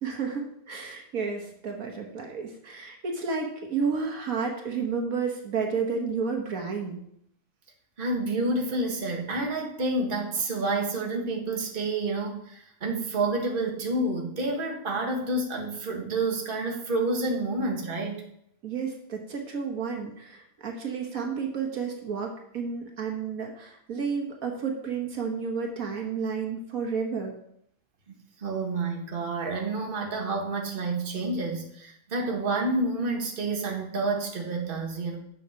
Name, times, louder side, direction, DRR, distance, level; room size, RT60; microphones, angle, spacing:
voice 1, 0.0-7.0 18.6-27.4, right 5 dB, 65° right, 2 dB, 1.6 m, -31 dB
voice 2, 8.0-18.2 28.1-35.2, right 2 dB, 35° right, 1 dB, 1.6 m, -29 dB
7.3 x 7.0 x 5.8 m, 0.72 s
omnidirectional pair, 1.6 m